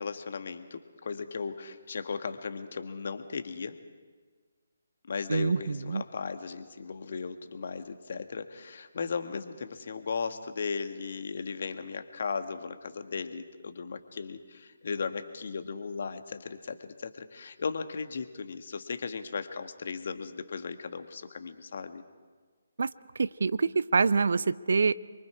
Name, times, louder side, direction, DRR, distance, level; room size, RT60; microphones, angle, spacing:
voice 1, 0.0-3.8 5.1-22.0, left 5 dB, 50° left, 8 dB, 1.6 m, -36 dB
voice 2, 5.3-6.0 22.8-22.9 23.2-24.9, right 4 dB, 60° right, 18 dB, 0.6 m, -26 dB
27.0 x 23.5 x 4.9 m, 1.5 s
figure-of-eight pair, 145°, 0 cm